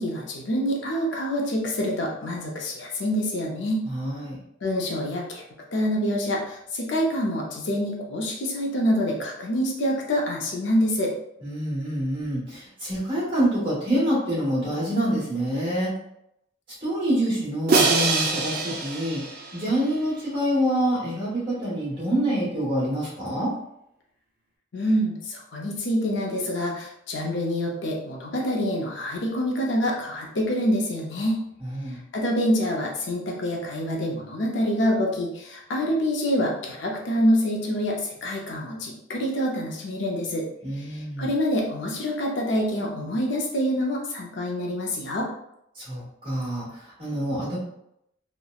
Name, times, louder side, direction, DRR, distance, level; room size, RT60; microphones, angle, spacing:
voice 1, 0.0-3.9 4.6-5.4 5.7-11.1 24.7-31.4 32.1-40.5 40.8-45.3, equal, 70° left, -1 dB, 0.5 m, -26 dB
voice 2, 3.8-4.4 11.4-15.9 16.8-19.2 19.5-23.5 31.6-32.0 40.6-41.3 45.7-47.6, equal, 25° right, -8 dB, 1.2 m, -26 dB
Crash cymbal, 17.7-19.9, right 3 dB, 50° right, 0.4 m, -24 dB
2.8 x 2.1 x 2.3 m, 0.77 s
head